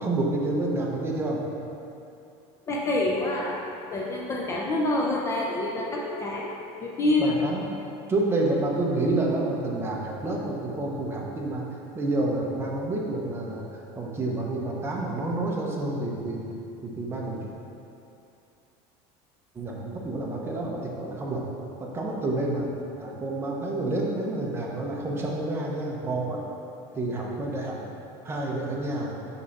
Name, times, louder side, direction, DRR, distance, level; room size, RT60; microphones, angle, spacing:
voice 1, 0.0-1.4 7.2-7.6 8.1-11.6 11.9-13.6 13.9-16.4 16.8-17.4 19.5-21.4 21.8-22.7 23.0-26.4 26.9-27.8 28.2-29.2, right 2 dB, 20° right, -2 dB, 0.8 m, -28 dB
voice 2, 2.7-3.6 3.9-7.3, left 2 dB, 20° left, -2 dB, 0.5 m, -27 dB
5.7 x 5.4 x 4.1 m, 2.7 s
cardioid pair, 155°, 14 cm